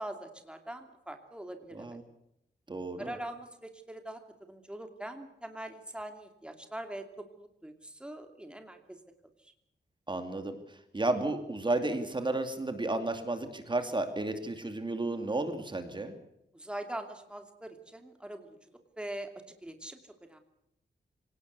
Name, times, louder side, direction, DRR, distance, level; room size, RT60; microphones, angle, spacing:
voice 1, 0.0-2.0 3.0-4.2 4.5-9.0 9.4-9.5 16.5-18.6 19.0-19.3 19.6-20.4, right 1 dB, 5° right, 6 dB, 2.6 m, -42 dB
voice 2, 2.7-3.2 10.1-10.6 10.9-16.1, right 2 dB, 25° right, 7 dB, 2.5 m, -32 dB
26.0 x 18.0 x 8.1 m, 0.80 s
wide cardioid pair, 125°, 17 cm